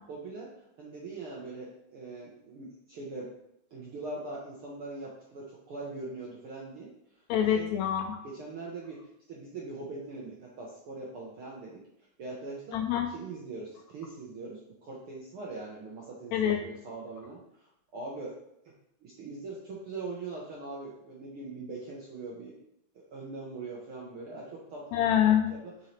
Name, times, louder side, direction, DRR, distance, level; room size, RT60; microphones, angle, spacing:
voice 1, 0.1-0.5 0.8-3.3 3.7-6.9 7.5-7.7 8.2-9.0 9.3-11.8 12.2-12.8 13.1-18.3 19.0-22.5 22.9-25.1 25.6-25.7, right 3 dB, 65° right, -4 dB, 1.3 m, -41 dB
voice 2, 7.3-8.2 12.7-13.1 16.3-16.6 24.9-25.5, left 10 dB, 85° left, 4 dB, 1.6 m, -25 dB
7.0 x 5.5 x 3.3 m, 0.79 s
omnidirectional pair, 3.7 m